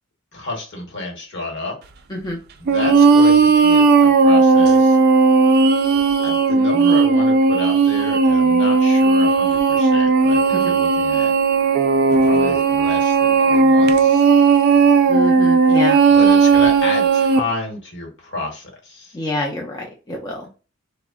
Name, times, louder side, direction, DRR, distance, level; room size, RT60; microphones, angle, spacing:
voice 1, 0.3-1.8 2.6-5.0 6.2-11.3 12.2-14.3 16.1-19.2, left 2 dB, 65° left, 1 dB, 1.1 m, -30 dB
sound 1, 2.7-17.4, right 4 dB, 50° right, 0.4 m, -15 dB
voice 2, 15.1-16.0 19.1-20.5, left 1 dB, 20° left, -1 dB, 0.5 m, -27 dB
3.5 x 2.0 x 2.2 m, 0.34 s
head